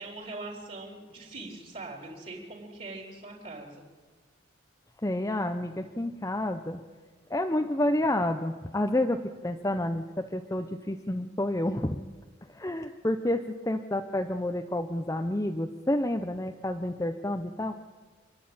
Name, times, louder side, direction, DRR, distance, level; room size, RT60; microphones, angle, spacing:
voice 1, 0.0-3.8, right 2 dB, 40° right, -3 dB, 3.9 m, -42 dB
voice 2, 5.0-6.8 7.3-12.0 12.5-17.8, left 1 dB, 15° left, 5 dB, 0.7 m, -29 dB
27.5 x 10.5 x 8.8 m, 1.4 s
head